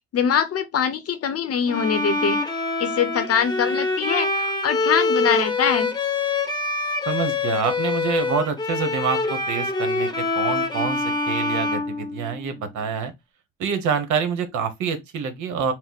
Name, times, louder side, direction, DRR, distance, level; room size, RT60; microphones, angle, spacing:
voice 1, 0.1-2.4 2.8-5.9, left 7 dB, 50° left, 0.8 m, -23 dB
Bowed string instrument, 1.7-12.7, left 3 dB, 15° left, 0.8 m, -25 dB
voice 2, 7.1-13.1 13.6-15.7, right 6 dB, 70° right, 1.1 m, -26 dB
4.3 x 2.1 x 4.0 m
cardioid pair, 90°, 30 cm